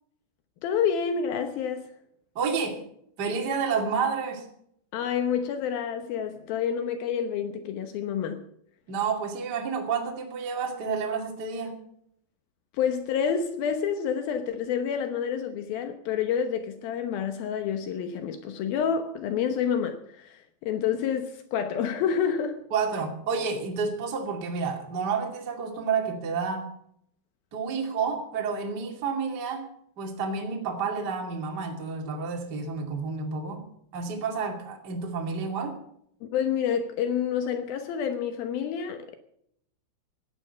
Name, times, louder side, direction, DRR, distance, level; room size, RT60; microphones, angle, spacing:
voice 1, 0.6-1.9 4.9-8.5 12.7-22.6 36.2-39.2, left 7 dB, 85° left, 2.1 m, -28 dB
voice 2, 2.3-2.8 3.2-4.5 8.9-11.8 22.7-26.7 27.5-29.7 30.0-33.6 33.9-35.8, right 5 dB, 35° right, 1.7 m, -30 dB
18.0 x 12.0 x 5.6 m
omnidirectional pair, 5.9 m